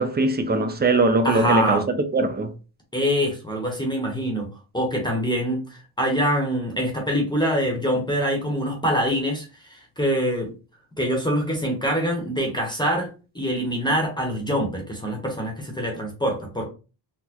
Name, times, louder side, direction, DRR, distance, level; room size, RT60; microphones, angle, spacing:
voice 1, 0.0-1.8 2.1-2.5, right 2 dB, 25° right, 0.5 m, -21 dB
voice 2, 1.2-1.8 2.9-4.5 4.7-10.5 11.0-13.1 13.3-16.6, equal, 10° left, 0.9 m, -24 dB
4.1 x 2.1 x 2.8 m
cardioid pair, 115°, 45 cm